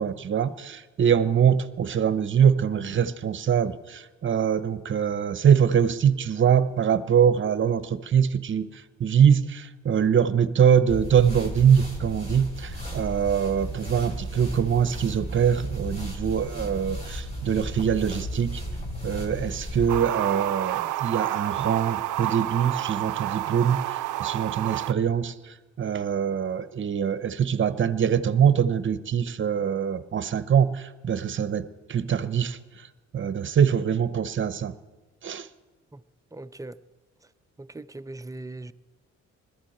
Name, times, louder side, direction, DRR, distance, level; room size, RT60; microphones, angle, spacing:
voice 1, 0.0-8.7 9.0-18.6 19.0-25.3 25.8-32.6 33.1-34.7 35.2-35.5, right 8 dB, 40° right, 0.8 m, -23 dB
sound 1, 10.9-19.9, equal, 20° left, 4.9 m, -34 dB
sound 2, 19.9-24.9, right 15 dB, 85° right, 0.5 m, -29 dB
voice 2, 36.3-36.8 37.6-38.7, right 2 dB, 10° right, 0.5 m, -39 dB
21.0 x 13.5 x 4.3 m
cardioid pair, 90°, 30 cm